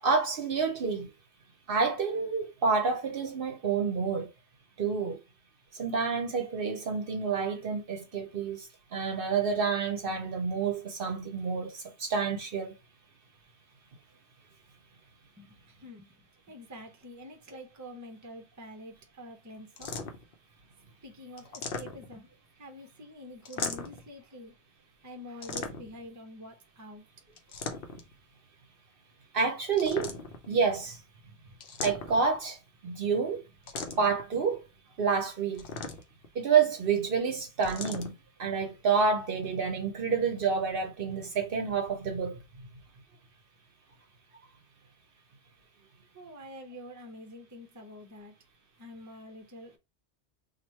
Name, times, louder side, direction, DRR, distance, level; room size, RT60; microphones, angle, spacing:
voice 1, 0.0-1.1 1.7-4.3 4.8-5.2 5.7-12.8 29.3-30.1 30.5-31.0 31.8-32.6 32.8-33.4 34.0-34.6 35.0-35.7 36.3-42.4, right 5 dB, 60° right, 0.8 m, -28 dB
voice 2, 15.4-16.1 16.5-20.0 21.0-22.3 22.5-24.5 25.0-27.1 46.1-48.3 48.8-49.8, equal, 20° right, 0.7 m, -47 dB
sound 1, 19.8-20.3 21.4-22.3 23.4-24.1 25.4-26.1 27.4-28.1 29.7-30.5 31.6-32.4 33.7-34.2 35.5-36.3 37.6-38.1, left 4 dB, 60° left, 0.8 m, -38 dB
3.0 x 2.4 x 4.2 m
omnidirectional pair, 1.1 m